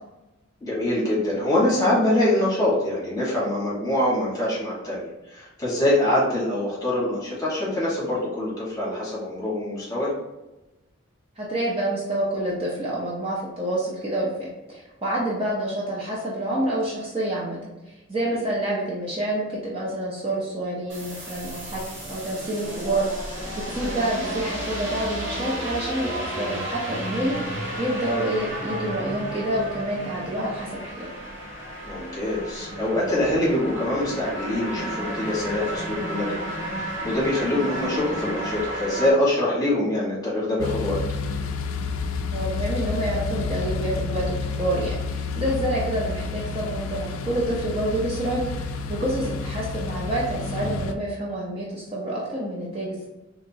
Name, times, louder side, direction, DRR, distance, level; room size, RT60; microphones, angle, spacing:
voice 1, 0.6-10.1 23.8-24.0 31.9-41.0, left 1 dB, 20° left, -7 dB, 1.2 m, -24 dB
voice 2, 11.4-17.7 18.1-21.8 22.1-23.4 23.7-31.1 42.3-53.1, right 1 dB, 25° right, -6 dB, 0.6 m, -28 dB
sound 1, 20.9-39.1, equal, 65° right, 1.3 m, -33 dB
sound 2, 40.6-50.9, left 4 dB, 85° left, 0.3 m, -30 dB
3.5 x 2.9 x 2.6 m, 1.0 s
head